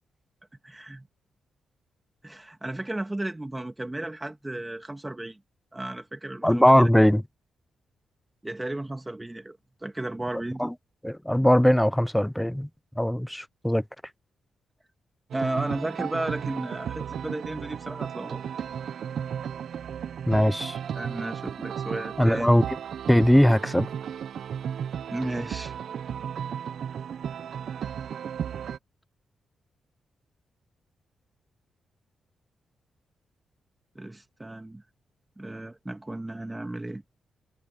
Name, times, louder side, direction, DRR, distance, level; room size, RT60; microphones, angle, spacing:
voice 1, 0.6-1.1 2.2-5.4 5.7-6.9 8.4-10.7 15.3-18.4 21.0-22.5 25.1-25.7 33.9-34.8 35.4-37.0, right 1 dB, 15° right, 2.5 m, -34 dB
voice 2, 6.4-7.2 10.6-10.7 11.0-12.7 13.0-13.8 20.3-20.8 22.2-22.6 23.1-23.9, equal, 5° left, 0.5 m, -20 dB
sound 1, 15.3-28.8, right 8 dB, 70° right, 0.9 m, -34 dB
cardioid pair, 65°, 0 cm